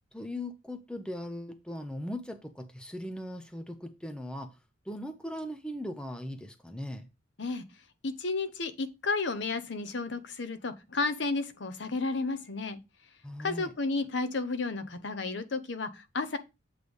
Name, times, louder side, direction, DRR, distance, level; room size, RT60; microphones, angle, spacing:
voice 1, 0.1-4.6 4.8-7.1 13.2-13.7, left 1 dB, 5° left, 0.6 m, -39 dB
voice 2, 8.0-12.8 13.4-16.4, left 3 dB, 60° left, 0.8 m, -32 dB
8.0 x 3.3 x 5.2 m
head